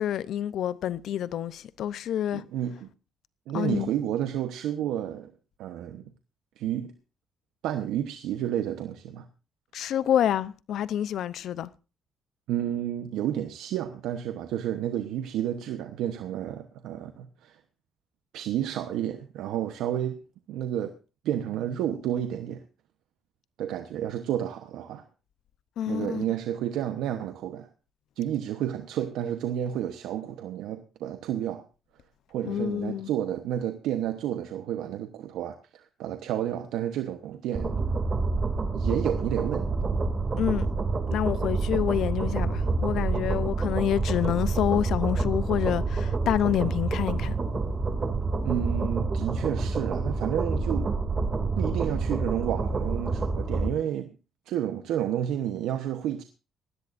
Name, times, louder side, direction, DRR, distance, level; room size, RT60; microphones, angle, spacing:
voice 1, 0.0-2.4 3.5-3.9 9.7-11.7 25.8-26.2 32.5-33.1 40.4-40.7 41.1-47.3, left 10 dB, 75° left, 0.7 m, -28 dB
voice 2, 2.3-2.9 3.5-5.3 5.6-6.1 6.6-6.9 7.6-9.2 12.5-17.6 18.3-20.2 20.5-20.9 21.2-22.6 23.6-25.0 25.9-27.7 28.2-31.6 32.3-37.8 38.7-39.7 48.4-51.0 51.6-54.2 54.5-56.2, right 11 dB, 90° right, 1.0 m, -31 dB
sound 1, 37.6-53.7, right 3 dB, 35° right, 2.5 m, -28 dB
19.0 x 15.0 x 2.6 m
cardioid pair, 90°, 0 cm